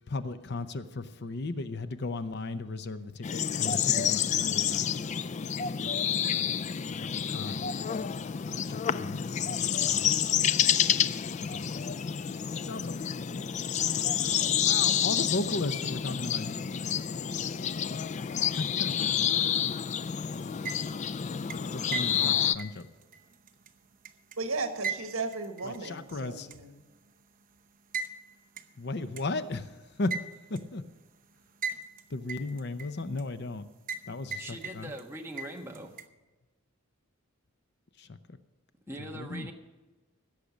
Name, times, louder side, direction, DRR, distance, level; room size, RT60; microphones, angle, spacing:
voice 1, 0.1-4.9 6.9-7.7 8.6-9.2 9.6-10.2 11.4-11.8 12.6-13.0 14.6-16.6 18.2-19.2 21.5-22.9 25.6-26.5 28.8-30.1 30.5-30.8 32.1-33.6 34.1-34.9 38.0-38.1 39.1-39.5, left 2 dB, 50° left, 0.7 m, -36 dB
sound 1, 3.2-22.5, left 9 dB, 35° left, 0.3 m, -29 dB
sound 2, 20.4-21.1 21.5-24.4 24.8-26.1 26.5-26.6 27.9-28.1 28.6-28.7 29.2-29.3 30.1-30.6 31.6-32.0 32.3-33.2 33.9-34.1 34.3-35.0 35.4-36.1, right 5 dB, 40° right, 0.8 m, -37 dB
voice 2, 24.4-26.8, right 3 dB, 80° right, 1.6 m, -35 dB
voice 3, 34.4-35.9 38.9-39.5, right 1 dB, 10° right, 1.3 m, -41 dB
16.5 x 6.7 x 7.2 m
head